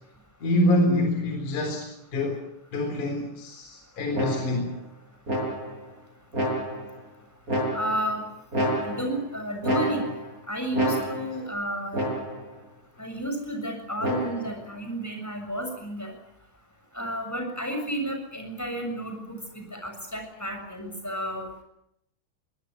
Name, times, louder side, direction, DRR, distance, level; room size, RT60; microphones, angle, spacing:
voice 1, 0.4-2.4 2.7-4.8, left 1 dB, 40° left, 4.8 m, -26 dB
sound 1, 4.1-4.7 5.3-5.9 6.3-7.0 7.5-8.1 8.5-9.3 9.6-10.4 10.7-11.4 11.9-12.5 14.0-14.6, equal, 15° right, 8.1 m, -29 dB
voice 2, 7.7-8.3 8.8-10.0 10.5-12.0 13.0-16.1 16.9-21.5, right 1 dB, 5° left, 6.4 m, -32 dB
24.0 x 19.5 x 9.6 m
omnidirectional pair, 6.0 m